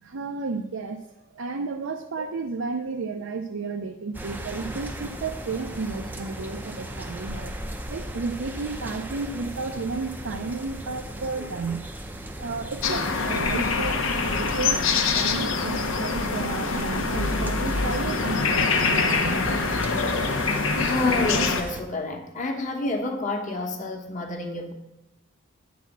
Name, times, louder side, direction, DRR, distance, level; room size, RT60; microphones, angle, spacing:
voice 1, 0.0-7.5 7.9-11.9 12.4-14.9 15.1-19.4, right 4 dB, 75° right, 4 dB, 0.5 m, -32 dB
sound 1, 4.1-21.8, right 1 dB, 10° right, 0.5 m, -37 dB
sound 2, 12.8-21.6, left 4 dB, 75° left, 0.9 m, -25 dB
voice 2, 20.8-24.7, left 2 dB, 35° left, 3 dB, 1.1 m, -29 dB
9.2 x 4.1 x 7.3 m, 0.94 s
head